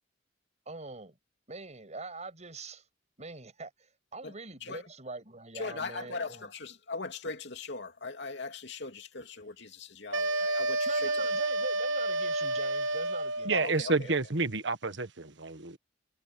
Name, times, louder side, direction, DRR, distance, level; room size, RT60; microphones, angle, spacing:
voice 1, 0.7-1.1 1.5-2.8 3.2-3.7 4.1-6.5 10.9-13.6 14.0-14.1, right 3 dB, 40° right, 7.1 m, -43 dB
voice 2, 5.5-11.1 13.5-14.1, left 3 dB, 65° left, 2.9 m, -39 dB
sound 1, 10.1-13.6, right 2 dB, 90° right, 1.1 m, -30 dB
voice 3, 13.4-15.8, right 3 dB, 65° right, 1.6 m, -29 dB
head